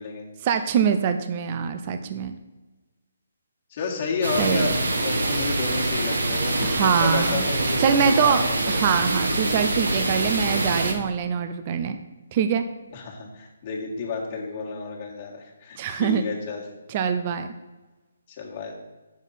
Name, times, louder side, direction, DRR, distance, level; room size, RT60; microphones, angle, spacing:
voice 1, 0.4-2.3 4.4-4.7 6.6-7.4 7.8-12.0 12.3-12.6 15.8-16.3 16.9-17.5, right 7 dB, 30° right, 9 dB, 0.5 m, -24 dB
voice 2, 3.7-8.8 12.9-16.6 18.3-18.7, left 5 dB, 35° left, -3 dB, 1.8 m, -31 dB
sound 1, 4.2-10.9, right 2 dB, 90° right, 1.4 m, -25 dB
8.2 x 7.2 x 4.1 m, 1.2 s
hypercardioid pair, 160°, 0 cm